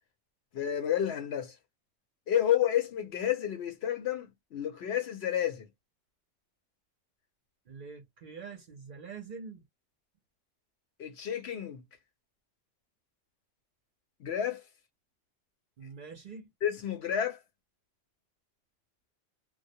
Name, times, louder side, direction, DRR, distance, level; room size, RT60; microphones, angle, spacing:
voice 1, 0.5-1.6 2.3-5.7 11.0-11.8 14.2-14.6 16.6-17.4, left 10 dB, 65° left, 0.8 m, -30 dB
voice 2, 7.7-9.7 15.8-16.5, right 5 dB, 55° right, 0.6 m, -45 dB
2.3 x 2.0 x 2.6 m
omnidirectional pair, 1.3 m